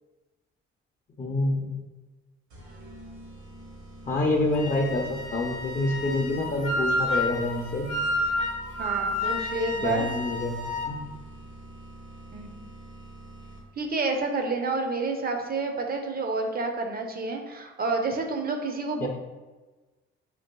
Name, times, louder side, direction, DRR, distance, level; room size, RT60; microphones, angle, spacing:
voice 1, 1.2-1.8 4.1-7.9 9.8-11.0 19.0-19.1, left 2 dB, 25° left, -2 dB, 0.5 m, -27 dB
sound 1, 2.5-13.9, right 2 dB, 65° right, 1.0 m, -46 dB
Wind instrument woodwind instrument, 4.5-10.9, left 1 dB, 70° left, 0.6 m, -30 dB
voice 2, 8.8-10.1 12.3-12.5 13.8-19.1, right 3 dB, 30° right, 4 dB, 0.5 m, -29 dB
3.9 x 2.5 x 2.2 m, 1.2 s
supercardioid pair, 60°, 30 cm